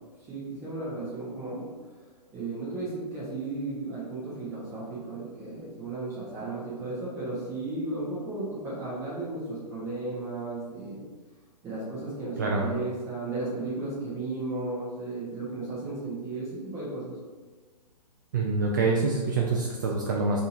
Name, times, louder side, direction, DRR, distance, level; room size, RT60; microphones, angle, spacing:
voice 1, 0.3-1.7 2.3-11.0 11.6-17.1, right 2 dB, 15° right, -9 dB, 1.2 m, -34 dB
voice 2, 12.4-12.7 18.3-20.4, right 3 dB, 30° right, -1 dB, 0.3 m, -26 dB
5.3 x 2.9 x 2.6 m, 1.4 s
figure-of-eight pair, 120°, 21 cm